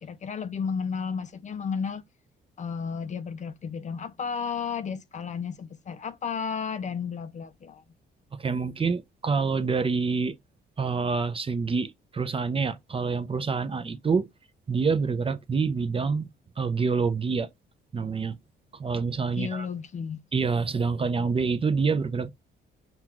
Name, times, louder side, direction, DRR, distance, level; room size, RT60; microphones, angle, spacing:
voice 1, 0.0-2.0 2.6-7.8 19.3-20.2, left 6 dB, 40° left, 0.5 m, -33 dB
voice 2, 8.4-10.3 10.8-14.3 14.7-16.3 16.6-17.5 17.9-18.4 18.8-19.7 20.3-22.3, right 5 dB, 30° right, 0.6 m, -27 dB
5.5 x 2.4 x 3.0 m
cardioid pair, 90°, 20 cm